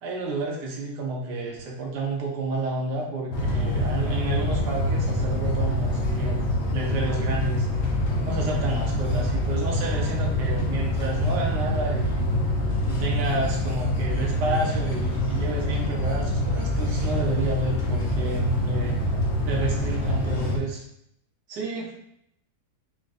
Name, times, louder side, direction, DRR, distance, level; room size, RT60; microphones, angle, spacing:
voice 1, 0.0-7.7 8.2-12.3 12.9-19.0 19.4-20.8 21.5-21.9, right 2 dB, 85° right, -1 dB, 1.4 m, -30 dB
sound 1, 3.3-20.6, left 1 dB, 55° left, 0.8 m, -25 dB
4.2 x 3.2 x 2.5 m, 0.76 s
omnidirectional pair, 1.8 m